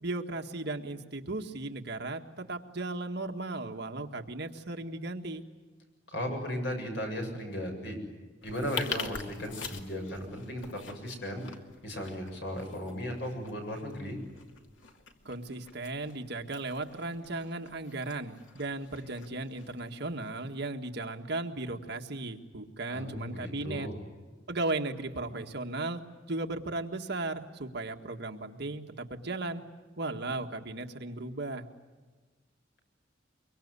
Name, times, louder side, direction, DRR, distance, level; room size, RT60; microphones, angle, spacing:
voice 1, 0.0-5.4 15.3-23.9 24.5-26.0 26.3-29.6 30.0-31.6, right 2 dB, 60° right, 4 dB, 1.8 m, -36 dB
voice 2, 6.1-8.0 8.4-11.4 11.8-14.2 22.9-24.0, equal, 65° left, 3 dB, 7.4 m, -36 dB
sound 1, 8.4-20.5, left 5 dB, 85° left, 2.6 m, -45 dB
24.0 x 24.0 x 9.7 m, 1.3 s
head